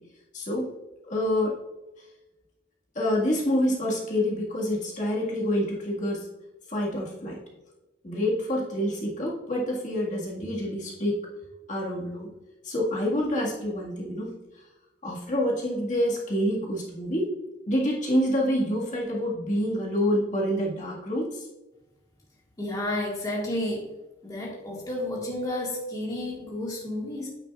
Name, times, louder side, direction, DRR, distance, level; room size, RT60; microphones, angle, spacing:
voice 1, 0.3-0.7 1.0-1.6 3.0-6.3 6.7-7.4 8.0-11.2 11.7-12.3 12.6-14.3 15.0-17.3 17.7-21.5, equal, 40° left, -3 dB, 1.8 m, -27 dB
voice 2, 22.6-23.9 24.2-27.3, left 1 dB, 20° left, -4 dB, 1.8 m, -31 dB
9.0 x 9.0 x 2.4 m, 1.0 s
head